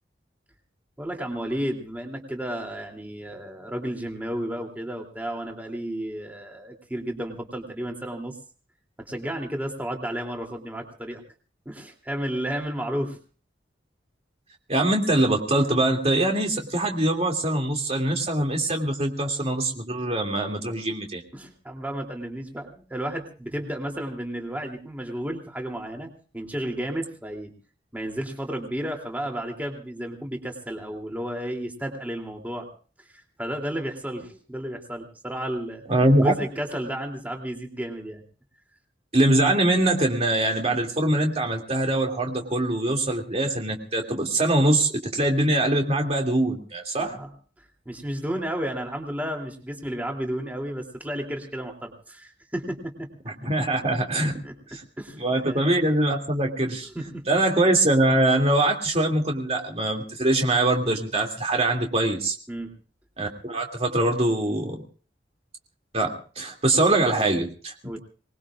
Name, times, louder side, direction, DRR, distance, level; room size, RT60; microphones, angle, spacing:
voice 1, 1.0-8.4 9.0-11.2 11.6-13.2 21.3-26.1 26.3-27.5 27.9-32.7 33.0-35.8 36.2-38.2 46.9-47.3 47.8-53.1 54.2-54.5 55.0-55.7 56.8-57.2 62.5-62.7 67.8-68.0, right 1 dB, 10° right, 2 dB, 2.9 m, -32 dB
voice 2, 14.7-21.2 35.9-36.3 39.1-47.2 53.3-54.3 54.7-54.8 55.2-56.9 57.3-62.3 63.2-64.8 65.9-68.0, right 1 dB, 35° right, 2 dB, 2.6 m, -23 dB
26.0 x 20.5 x 2.5 m, 0.40 s
head